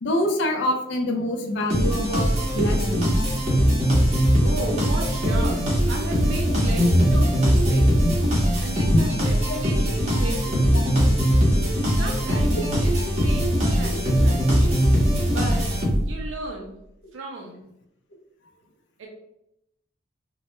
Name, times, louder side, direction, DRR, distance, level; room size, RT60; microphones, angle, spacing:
voice 1, 0.0-3.1 8.9-9.0, left 1 dB, 65° left, 3 dB, 0.4 m, -25 dB
sound 1, 1.7-16.3, equal, 35° right, 0.6 m, -21 dB
voice 2, 4.4-8.1 8.6-10.7 11.9-14.6 15.3-15.7 16.0-16.8 17.1-17.6 19.0-19.1, right 2 dB, 85° right, 0 dB, 0.4 m, -35 dB
2.0 x 2.0 x 2.9 m, 0.81 s
head